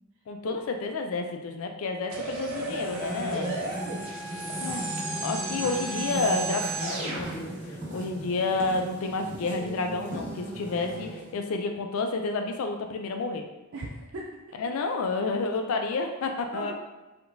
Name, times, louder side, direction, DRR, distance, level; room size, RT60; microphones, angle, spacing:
voice 1, 0.3-3.6 4.6-4.9 5.2-13.4 14.6-16.7, left 3 dB, 85° left, 4 dB, 0.4 m, -30 dB
sound 1, 2.1-7.2, right 2 dB, 90° right, 1.4 m, -34 dB
sound 2, 2.5-11.4, right 1 dB, 40° right, 1.4 m, -37 dB
voice 2, 3.4-4.1 10.7-10.9 13.7-14.3 16.5-16.7, right 2 dB, 65° right, -2 dB, 0.5 m, -39 dB
4.6 x 3.7 x 2.6 m, 1.1 s
head